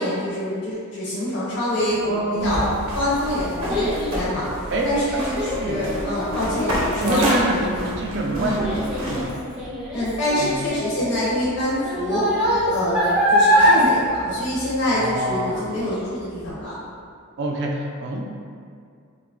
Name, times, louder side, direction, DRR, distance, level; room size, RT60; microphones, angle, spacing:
voice 1, 0.0-2.7 2.9-4.5 4.8-7.2 8.4-8.6 9.9-12.2 12.7-16.8, left 1 dB, 70° left, -8 dB, 0.6 m, -25 dB
voice 2, 2.0-2.6 4.7-4.9 5.6-5.8 7.0-8.8 9.1-9.3 10.3-10.5 14.9-15.7 17.4-18.3, right 2 dB, 55° right, 1 dB, 0.3 m, -25 dB
sound 1, 2.4-9.3, equal, 90° right, 0.6 m, -30 dB
Child speech kid speaking, 2.5-15.2 15.5-15.9 16.4-16.5, equal, 5° right, 0.6 m, -24 dB
2.9 x 2.2 x 2.3 m, 2.2 s
head